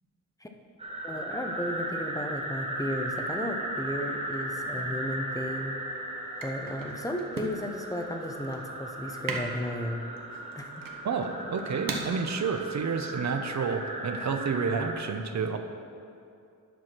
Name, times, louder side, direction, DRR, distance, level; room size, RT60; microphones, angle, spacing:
sound 1, 0.8-14.9, right 1 dB, 20° right, 1.0 m, -36 dB
voice 1, 1.0-5.8 6.4-10.0 10.6-10.8, equal, 10° left, 3 dB, 0.6 m, -34 dB
sound 2, 4.8-13.6, right 3 dB, 90° right, 1.0 m, -41 dB
voice 2, 11.0-15.6, right 5 dB, 60° right, 7 dB, 0.7 m, -30 dB
10.0 x 4.7 x 6.0 m, 2.5 s
wide cardioid pair, 140°, 32 cm